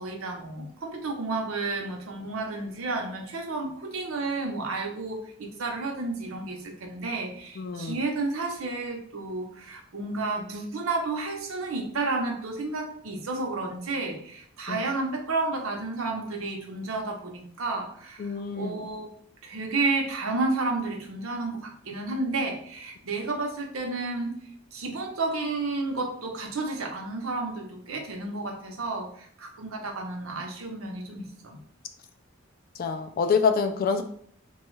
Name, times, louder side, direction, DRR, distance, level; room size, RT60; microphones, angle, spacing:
voice 1, 0.0-19.1 19.4-24.4 24.7-31.6, right 3 dB, 70° right, 1 dB, 0.7 m, -31 dB
voice 2, 7.6-7.9 14.7-14.8 18.2-18.7 32.8-34.0, left 5 dB, 45° left, 7 dB, 0.3 m, -26 dB
3.1 x 2.3 x 3.1 m, 0.62 s
head